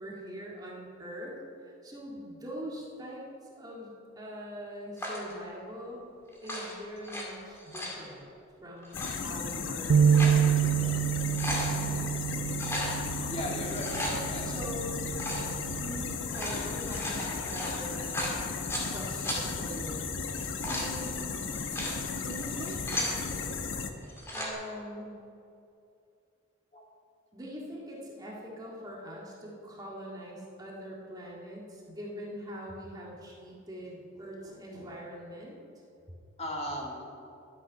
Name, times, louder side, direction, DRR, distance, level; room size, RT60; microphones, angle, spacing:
voice 1, 0.0-1.4 1.6-3.2 3.5-6.0 6.4-8.3 8.6-11.2 11.5-11.9 14.4-15.0 15.8-18.6 18.9-20.0 20.4-21.4 22.2-22.8 24.3-25.2 27.3-35.6, equal, 20° right, -4 dB, 1.9 m, -43 dB
sound 1, 5.0-5.3 6.3-7.2 7.6-8.0 8.8-9.1 9.8-10.4 10.8-10.9 11.2-11.7 12.5-12.9 13.6-14.2 15.1-15.5 16.2-18.9 19.2-19.4 20.3-20.9 21.5-22.0 22.5-23.2 24.0-24.5, left 1 dB, 10° left, 2.0 m, -35 dB
sound 2, 8.9-23.9, left 5 dB, 70° left, 0.9 m, -35 dB
sound 3, 9.9-16.1, right 8 dB, 60° right, 0.3 m, -28 dB
voice 2, 13.3-14.5 26.7-26.8 36.4-37.0, equal, 30° left, -1 dB, 1.9 m, -36 dB
12.0 x 9.6 x 5.6 m, 2.6 s
head